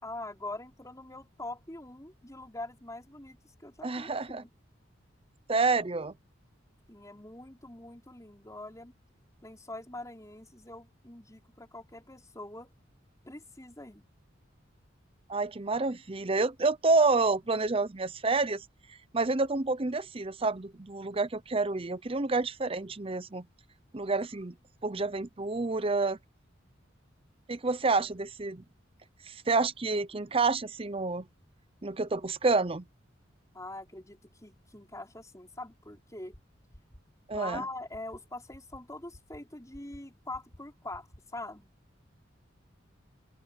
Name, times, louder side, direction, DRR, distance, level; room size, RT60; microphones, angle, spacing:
voice 1, 0.0-3.4 3.6-4.5 6.9-8.9 9.4-12.7 13.3-14.1 33.5-36.4 37.3-41.7, left 2 dB, 15° left, 5.2 m, -43 dB
voice 2, 3.8-4.4 5.5-6.1 15.3-18.6 19.1-23.4 23.9-24.5 24.8-26.2 27.5-28.6 29.3-31.2 31.8-32.8 37.3-37.6, right 3 dB, 30° right, 0.7 m, -28 dB
sound 1, 36.3-36.4 36.7-37.0 37.3-37.6 37.9-38.2 38.5-38.8 39.1-39.4 39.7-40.0 40.3-40.6 40.9-41.2, equal, 45° left, 6.2 m, -52 dB
open air
head